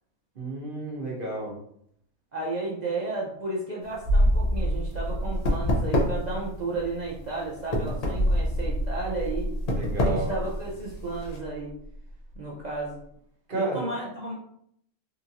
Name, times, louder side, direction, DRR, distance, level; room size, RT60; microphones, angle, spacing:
voice 1, 0.4-1.5 9.7-10.3 13.5-13.8, right 2 dB, 45° right, -3 dB, 0.9 m, -31 dB
voice 2, 2.3-9.5 10.0-11.7 12.4-13.0 13.5-14.3, right 3 dB, 60° right, -4 dB, 0.4 m, -33 dB
sound 1, 3.8-11.4, left 1 dB, 70° left, 0.3 m, -29 dB
sound 2, 4.0-12.4 12.7-12.9, equal, 90° left, 1.3 m, -28 dB
3.8 x 2.5 x 2.8 m, 0.70 s
omnidirectional pair, 1.5 m